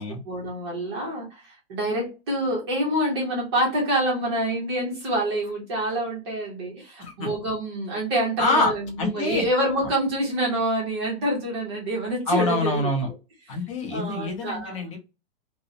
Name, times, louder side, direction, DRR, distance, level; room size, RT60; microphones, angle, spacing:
voice 1, 0.3-12.9 13.9-14.9, right 1 dB, 25° right, 0.6 m, -27 dB
voice 2, 8.4-8.7 9.0-9.5 12.3-13.1 13.5-15.0, left 2 dB, 30° left, 0.6 m, -25 dB
2.8 x 2.0 x 2.5 m
supercardioid pair, 180°, 32 cm